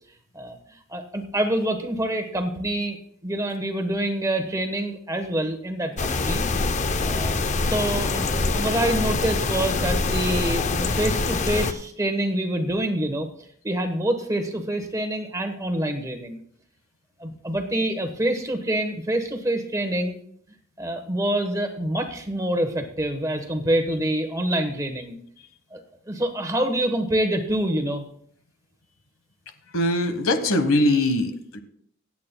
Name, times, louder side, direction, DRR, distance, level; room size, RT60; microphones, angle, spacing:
voice 1, 0.9-3.0 3.2-6.4 7.0-7.3 7.6-13.3 13.6-16.4 17.2-20.2 20.8-25.2 25.7-25.8 26.1-28.1, right 1 dB, 15° right, 5 dB, 1.1 m, -26 dB
sound 1, 6.0-11.7, left 3 dB, 35° left, 0.5 m, -24 dB
voice 2, 29.7-31.6, left 1 dB, 80° left, 9 dB, 1.2 m, -22 dB
24.5 x 8.6 x 2.2 m, 0.66 s
head